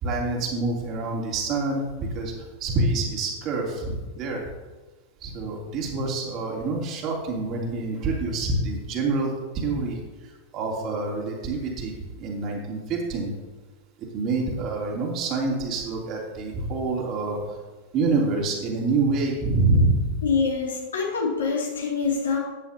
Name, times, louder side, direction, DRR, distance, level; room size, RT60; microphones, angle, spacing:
voice 1, 0.0-2.3 2.6-4.4 5.2-10.0 10.5-13.3 14.1-17.4 17.9-20.2, right 3 dB, 40° right, -2 dB, 3.1 m, -26 dB
voice 2, 20.2-22.4, left 5 dB, 70° left, -1 dB, 2.6 m, -25 dB
14.0 x 10.0 x 2.9 m, 1.2 s
figure-of-eight pair, 90°, 0 cm